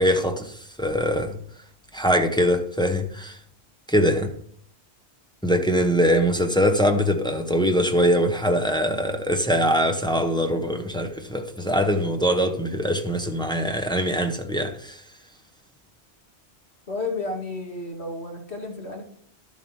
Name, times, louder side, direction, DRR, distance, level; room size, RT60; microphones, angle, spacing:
voice 1, 0.0-1.4 1.9-3.4 3.9-4.3 5.4-15.0, equal, 5° left, 0.7 m, -22 dB
voice 2, 16.9-19.0, left 3 dB, 70° left, 2.5 m, -32 dB
12.0 x 7.3 x 4.4 m
omnidirectional pair, 1.1 m